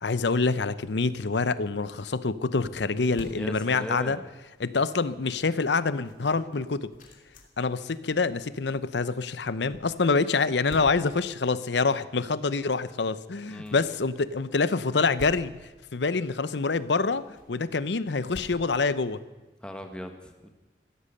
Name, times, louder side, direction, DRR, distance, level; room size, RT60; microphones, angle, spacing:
voice 1, 0.0-4.2 4.6-6.9 7.6-15.5 15.9-19.2, left 4 dB, 80° left, 15 dB, 0.7 m, -26 dB
sound 1, 2.1-19.6, equal, 45° left, 2.8 m, -52 dB
voice 2, 3.3-4.2 13.5-13.9 19.6-20.5, equal, 5° left, 5 dB, 1.5 m, -38 dB
15.5 x 13.5 x 6.6 m, 1.2 s
head